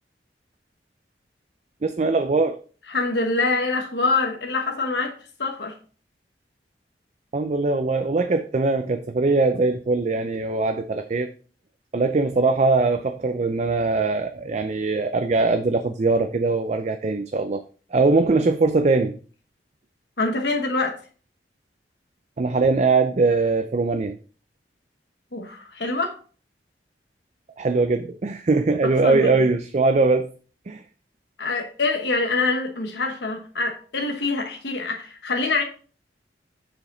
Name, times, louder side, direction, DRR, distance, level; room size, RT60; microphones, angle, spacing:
voice 1, 1.8-2.6 7.3-11.3 11.9-17.6 17.9-19.1 22.4-24.1 27.6-30.3 30.7-30.8, right 3 dB, 40° right, 0.4 m, -21 dB
voice 2, 2.9-5.8 20.2-21.0 25.3-26.2 28.8-29.5 31.4-35.6, left 3 dB, 70° left, 1.2 m, -25 dB
7.0 x 5.1 x 3.8 m
head